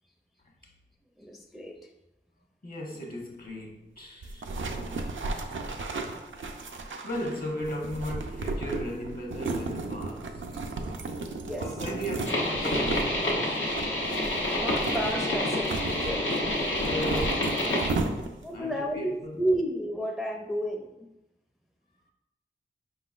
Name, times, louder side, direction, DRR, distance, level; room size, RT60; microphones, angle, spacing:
voice 1, 1.2-1.9 11.3-11.7 14.5-16.3 18.4-21.1, equal, ahead, 3 dB, 0.4 m, -32 dB
voice 2, 2.6-4.5 6.8-10.6 11.6-13.6 16.8-19.4, equal, 50° left, 0 dB, 1.1 m, -37 dB
sound 1, 4.2-18.6, right 3 dB, 90° right, 0.5 m, -34 dB
sound 2, 12.2-17.9, left 1 dB, 85° left, 0.9 m, -28 dB
5.0 x 3.8 x 2.4 m, 0.93 s
wide cardioid pair, 45°, 20 cm